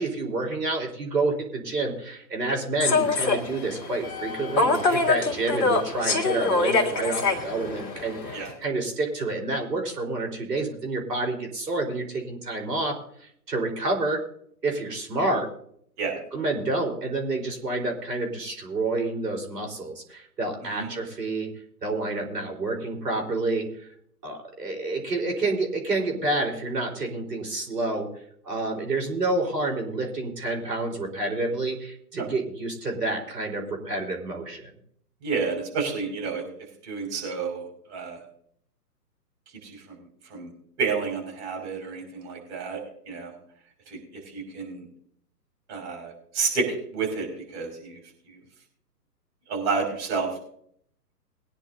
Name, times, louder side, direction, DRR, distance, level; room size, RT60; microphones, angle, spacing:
voice 1, 0.0-14.2 14.6-15.5 16.3-21.5 21.8-23.9 24.2-28.1 28.4-34.7, right 2 dB, 75° right, 3 dB, 4.4 m, -29 dB
Human voice / Subway metro underground, 2.8-8.5, left 3 dB, 25° left, 2.2 m, -25 dB
voice 2, 35.2-36.4 36.8-37.6 37.9-38.2 39.6-39.8 40.3-40.5 40.8-42.8 43.1-43.3 43.9-44.0 44.3-44.8 45.7-46.6 46.9-48.0 49.5-50.3, right 5 dB, 40° right, 1 dB, 6.0 m, -29 dB
22.5 x 10.0 x 2.7 m, 0.67 s
figure-of-eight pair, 135°, 49 cm